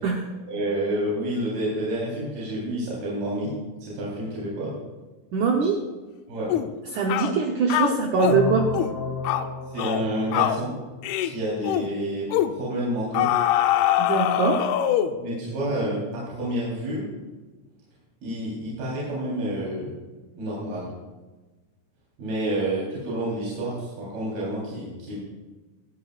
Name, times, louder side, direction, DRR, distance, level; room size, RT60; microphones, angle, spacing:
voice 1, 0.5-3.5 3.8-4.7 6.3-6.5 9.7-10.8 11.2-12.3 12.5-13.3 15.2-17.1 18.2-19.9 20.4-20.9 22.2-25.2, right 1 dB, 60° right, -7 dB, 5.6 m, -29 dB
voice 2, 5.3-5.8 6.9-8.7 14.0-14.7, right 5 dB, 85° right, 1 dB, 1.7 m, -22 dB
sound 1, 6.5-6.7 7.1-7.3 7.7-8.4 8.7-9.0 9.2-9.5 9.8-10.1 10.3-10.6 11.0-11.3 11.6-11.9 12.3-12.5 13.1-15.2, left 11 dB, 80° left, 2.4 m, -23 dB
sound 2, 8.2-11.2, left 3 dB, 45° left, 2.9 m, -32 dB
19.0 x 14.0 x 2.5 m, 1.2 s
omnidirectional pair, 4.8 m